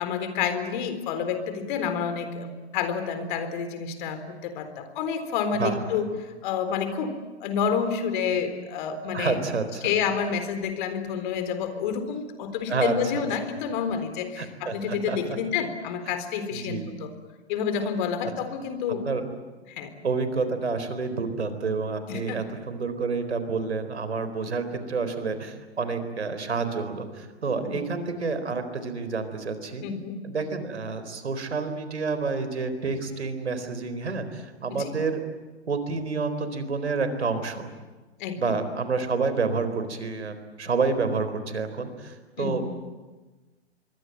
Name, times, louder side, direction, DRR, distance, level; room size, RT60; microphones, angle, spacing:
voice 1, 0.0-6.1 6.4-7.1 7.4-9.4 9.8-17.1 17.5-19.0 19.8-19.9 22.1-22.4 27.7-28.0 29.8-30.1 34.7-34.9 38.2-38.4 42.4-42.6, left 7 dB, 45° left, 9 dB, 3.9 m, -29 dB
voice 2, 5.6-6.0 9.1-10.0 12.7-13.3 14.4-15.2 16.5-16.9 19.1-19.2 20.0-29.8 30.2-35.3 35.7-37.7 38.3-42.6, right 4 dB, 80° right, 10 dB, 4.2 m, -29 dB
26.5 x 23.0 x 9.1 m, 1.2 s
figure-of-eight pair, 115°, 34 cm